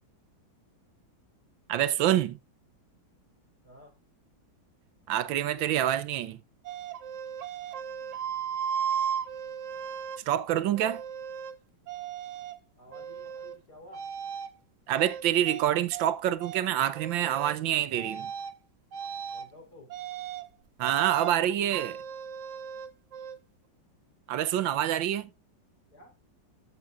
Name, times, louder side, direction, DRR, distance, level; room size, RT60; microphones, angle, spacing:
voice 1, 1.7-2.4 5.1-6.4 10.3-11.0 14.9-18.3 20.8-22.0 24.3-25.3, right 11 dB, 80° right, 1.5 m, -27 dB
sound 1, 6.6-10.2 10.8-11.5 11.9-12.6 12.9-13.6 13.9-14.5 14.9-16.1 16.4-16.6 16.9-17.6 18.0-18.5 18.9-19.5 19.9-20.5 20.8-21.4 21.7-23.4, right 8 dB, 55° right, 1.0 m, -36 dB
voice 2, 12.8-14.1 19.3-19.9 25.9-26.1, left 1 dB, 55° left, 4.6 m, -52 dB
13.5 x 7.2 x 2.5 m
omnidirectional pair, 2.0 m